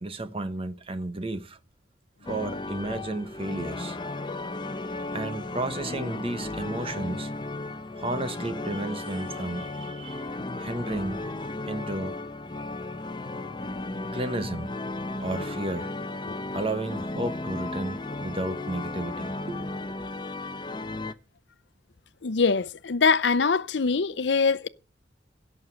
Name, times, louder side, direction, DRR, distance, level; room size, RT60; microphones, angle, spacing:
voice 1, 0.0-1.6 2.2-4.0 5.1-7.3 8.0-10.2 10.6-11.2 11.7-12.1 14.1-14.7 15.2-15.9 16.5-20.0, right 2 dB, 30° right, 1.1 m, -33 dB
sound 1, 2.3-21.1, left 2 dB, 25° left, 0.8 m, -35 dB
voice 2, 22.2-24.7, left 5 dB, 75° left, 0.7 m, -24 dB
17.0 x 6.5 x 7.9 m
head